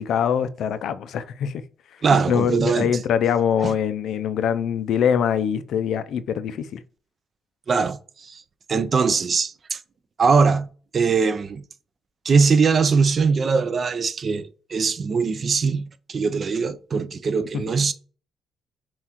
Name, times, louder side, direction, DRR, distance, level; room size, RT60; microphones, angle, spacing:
voice 1, 0.0-1.5 2.3-6.8 17.5-17.6, left 8 dB, 70° left, 0.4 m, -23 dB
voice 2, 2.0-2.9 3.6-3.7 7.7-8.4 8.7-9.8 10.2-10.7 10.9-11.6 12.2-17.9, right 5 dB, 45° right, 0.4 m, -21 dB
5.6 x 2.4 x 2.9 m
cardioid pair, 90°, 0 cm